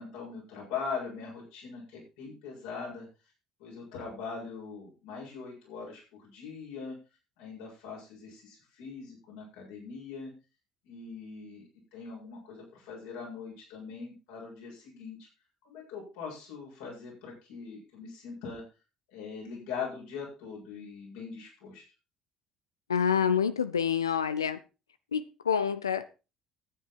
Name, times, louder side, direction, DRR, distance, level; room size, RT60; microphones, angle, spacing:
voice 1, 0.0-3.1 3.6-7.0 7.4-10.3 10.8-11.6 11.9-15.3 15.6-18.6 19.1-21.8, left 5 dB, 65° left, -2 dB, 7.5 m, -41 dB
voice 2, 22.9-24.6 25.1-26.2, left 7 dB, 80° left, 13 dB, 0.6 m, -27 dB
12.0 x 10.0 x 4.5 m, 0.31 s
figure-of-eight pair, 55°, 2 cm